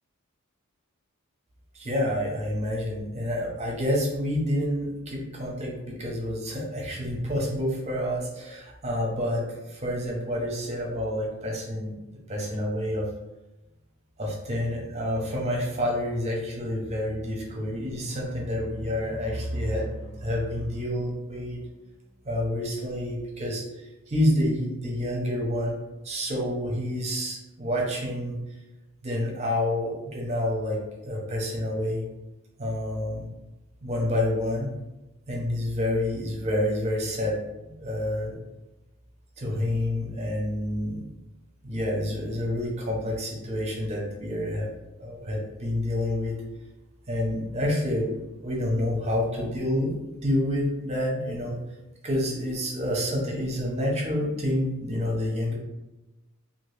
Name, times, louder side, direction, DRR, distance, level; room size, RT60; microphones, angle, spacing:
voice 1, 1.7-12.0 12.3-13.1 14.2-21.6 22.2-23.6 24.1-25.8 26.0-28.4 29.0-32.0 32.6-33.3 33.8-34.7 35.3-38.3 39.4-41.0 41.6-44.7 45.0-46.4 47.1-49.9 50.2-51.5 52.0-55.5, left 1 dB, 30° right, -2 dB, 0.7 m, -28 dB
2.8 x 2.5 x 3.2 m, 1.0 s
head